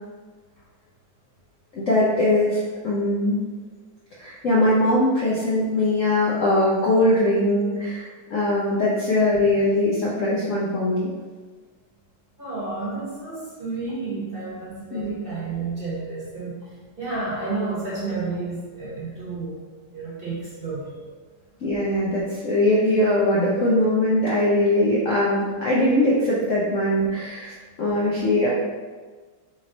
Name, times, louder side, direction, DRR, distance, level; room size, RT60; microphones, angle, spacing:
voice 1, 1.7-3.4 4.2-8.0 8.3-11.1 14.9-15.2 21.6-27.5 27.8-28.5, left 1 dB, 60° left, -6 dB, 0.8 m, -21 dB
voice 2, 12.4-16.6 17.0-19.5 19.9-20.9, right 3 dB, 35° right, -8 dB, 1.2 m, -31 dB
4.1 x 3.1 x 3.9 m, 1.4 s
omnidirectional pair, 2.1 m